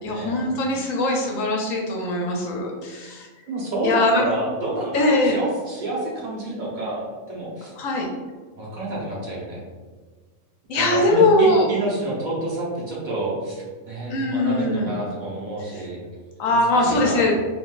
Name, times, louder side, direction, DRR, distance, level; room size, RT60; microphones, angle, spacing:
voice 1, 0.0-3.3 3.8-4.3 4.9-5.4 7.8-8.1 10.7-11.7 14.1-15.0 16.4-17.3, left 2 dB, 75° left, 0 dB, 1.0 m, -21 dB
voice 2, 3.5-7.7 8.6-9.6 10.8-16.0 16.5-17.2, right 1 dB, 40° right, -5 dB, 0.9 m, -29 dB
3.8 x 2.7 x 2.3 m, 1.4 s
omnidirectional pair, 1.4 m